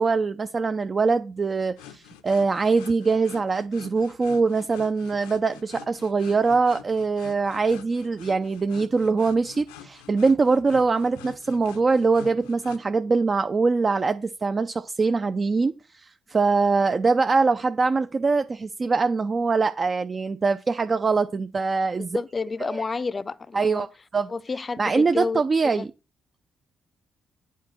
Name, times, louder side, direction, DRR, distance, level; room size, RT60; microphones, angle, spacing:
voice 1, 0.0-22.2 22.6-22.8 23.5-23.9 24.1-24.3 24.8-25.9, right 4 dB, 40° right, 0.5 m, -23 dB
sound 1, 1.8-12.8, left 9 dB, 80° left, 0.6 m, -46 dB
voice 2, 22.1-23.9 24.3-25.9, left 4 dB, 35° left, 0.5 m, -30 dB
8.4 x 4.2 x 5.8 m
hypercardioid pair, 40°, 0 cm